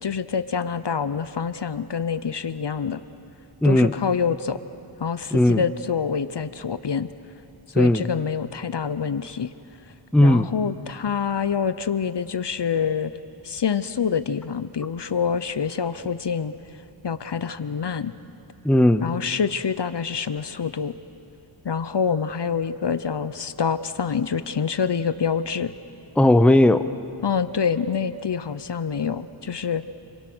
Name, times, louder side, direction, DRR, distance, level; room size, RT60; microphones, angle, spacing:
voice 1, 0.0-3.0 3.6-4.6 5.0-7.1 7.7-9.5 10.2-13.1 13.4-16.5 17.0-18.1 19.0-20.9 21.6-25.7 27.2-29.8, left 6 dB, 55° left, 14 dB, 0.7 m, -26 dB
voice 2, 3.6-3.9 5.3-5.6 7.7-8.1 10.1-10.5 18.6-19.1 26.2-26.8, left 1 dB, ahead, 10 dB, 0.7 m, -16 dB
29.5 x 23.0 x 6.2 m, 2.7 s
wide cardioid pair, 70°, 49 cm